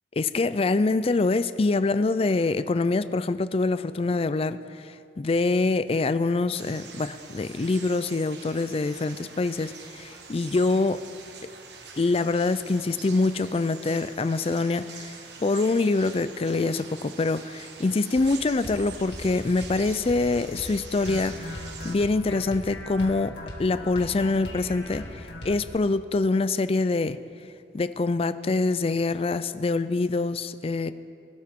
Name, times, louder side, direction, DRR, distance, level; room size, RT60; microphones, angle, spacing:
voice 1, 0.2-11.0 12.0-15.1 15.4-27.2 27.7-30.9, left 3 dB, 35° left, 13 dB, 0.4 m, -25 dB
sound 1, 6.5-22.0, right 5 dB, 70° right, 1.3 m, -44 dB
sound 2, 18.2-18.3 18.6-18.8 19.1-19.3 19.6-19.8 20.1-20.2 20.6-20.8 21.1-25.7, left 1 dB, 85° left, 2.0 m, -39 dB
21.5 x 12.5 x 3.7 m, 2.4 s
head